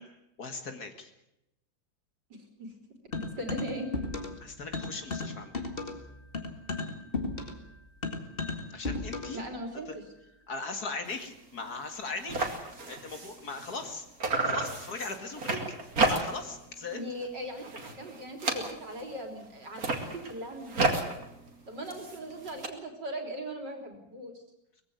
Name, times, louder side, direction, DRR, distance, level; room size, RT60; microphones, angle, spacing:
voice 1, 0.4-1.1 4.4-5.7 8.7-9.4 10.5-12.5 12.9-14.1 14.4-15.6 16.1-17.1, left 3 dB, 55° left, 7 dB, 2.5 m, -38 dB
voice 2, 2.3-2.7 3.1-3.9 9.3-10.0 16.9-21.1 21.7-24.4, right 1 dB, 65° right, 5 dB, 4.3 m, -39 dB
sound 1, 3.1-4.4 4.7-9.5, left 3 dB, 30° left, 2.1 m, -35 dB
sound 2, 11.1-11.3 11.6-11.7 11.9-13.9 14.2-16.6 16.9-17.3 17.6-19.1 19.6-22.7, right 3 dB, 50° right, 2.9 m, -32 dB
20.5 x 15.5 x 9.5 m, 0.85 s
omnidirectional pair, 2.1 m